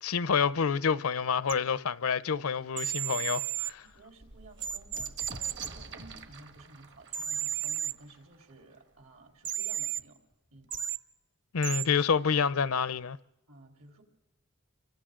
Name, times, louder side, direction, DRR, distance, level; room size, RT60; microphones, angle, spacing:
voice 1, 0.0-3.8 11.5-13.2, left 6 dB, 85° left, 0.6 m, -28 dB
sound 1, 1.5-1.6 2.8-3.7 4.6-5.7 7.1-7.9 9.4-10.0 10.7-11.0 11.6-11.9, right 10 dB, 40° right, 0.8 m, -33 dB
sound 2, 2.5-2.6 3.1-3.2 3.5-9.0 10.0-10.1 10.3-10.9, right 4 dB, 55° right, 1.6 m, -48 dB
voice 2, 3.8-10.2 10.5-10.7 13.5-14.0, right 2 dB, 70° right, 3.9 m, -54 dB
28.5 x 24.5 x 3.8 m
head